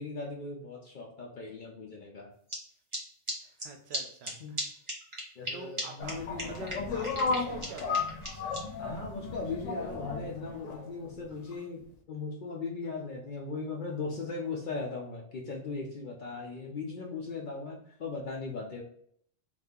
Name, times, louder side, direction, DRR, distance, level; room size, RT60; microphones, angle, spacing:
voice 1, 0.0-2.3 4.4-4.5 5.4-6.8 8.8-18.8, left 4 dB, 60° left, -1 dB, 0.6 m, -38 dB
sound 1, 2.5-2.6 2.9-3.0 3.3-3.4 3.6-3.7 3.9-4.0 4.2-4.3 4.6-4.7 4.9-5.5 5.8-5.9 6.1-6.2 6.4-8.6, equal, 30° right, 0.8 m, -35 dB
voice 2, 3.4-4.6 5.5-8.0, right 5 dB, 70° right, 4 dB, 0.8 m, -46 dB
sound 2, 6.0-11.5, left 4 dB, 90° left, 0.9 m, -34 dB
2.7 x 2.4 x 3.5 m, 0.63 s
omnidirectional pair, 1.2 m